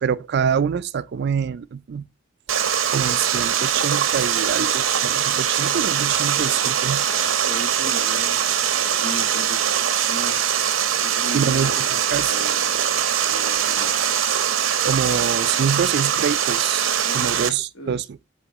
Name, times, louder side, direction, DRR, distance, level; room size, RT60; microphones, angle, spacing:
voice 1, 0.0-2.1 2.9-7.0 11.3-11.7 12.1-12.4 14.9-18.0, right 7 dB, 55° right, 0.4 m, -25 dB
Water, 2.5-17.5, right 9 dB, 85° right, 0.7 m, -22 dB
voice 2, 6.3-9.6 10.1-10.4 11.0-14.1 17.0-17.3 17.7-18.0, equal, 80° left, 1.5 m, -37 dB
7.2 x 3.8 x 4.0 m
head